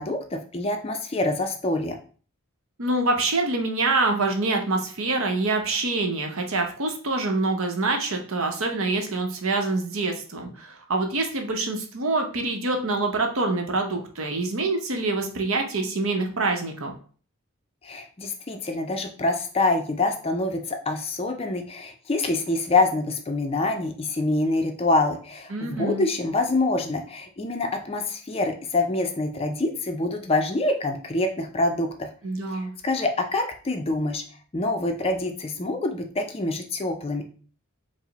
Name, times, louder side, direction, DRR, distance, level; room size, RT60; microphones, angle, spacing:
voice 1, 0.0-2.0 17.8-32.1 32.5-34.2 34.5-37.2, left 2 dB, 25° left, 5 dB, 0.4 m, -26 dB
voice 2, 2.8-16.9 25.5-26.0 32.2-32.7, right 3 dB, 70° right, 3 dB, 0.8 m, -26 dB
4.8 x 2.0 x 3.9 m, 0.42 s
head